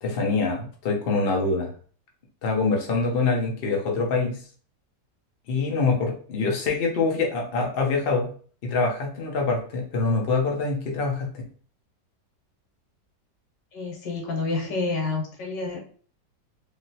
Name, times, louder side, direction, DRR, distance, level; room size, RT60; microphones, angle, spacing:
voice 1, 0.0-1.7 2.4-4.4 5.5-8.3 8.6-11.4, left 3 dB, 50° left, 0 dB, 0.7 m, -25 dB
voice 2, 13.7-15.8, left 3 dB, 80° left, 0 dB, 1.6 m, -28 dB
3.1 x 2.7 x 2.7 m, 0.43 s
omnidirectional pair, 1.9 m